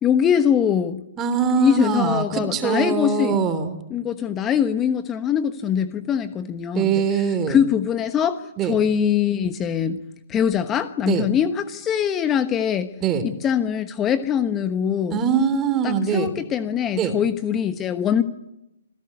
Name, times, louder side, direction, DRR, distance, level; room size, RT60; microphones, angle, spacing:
voice 1, 0.0-1.0 1.6-3.4 3.9-10.0 10.3-12.9 13.2-15.2 15.8-18.2, left 8 dB, 20° left, 11 dB, 1.1 m, -22 dB
voice 2, 1.2-3.8 6.7-7.6 8.6-8.8 11.1-11.3 13.0-13.3 15.1-16.3 16.9-17.1, right 6 dB, 20° right, 11 dB, 3.2 m, -22 dB
27.0 x 16.5 x 9.8 m, 0.90 s
figure-of-eight pair, 130°, 0 cm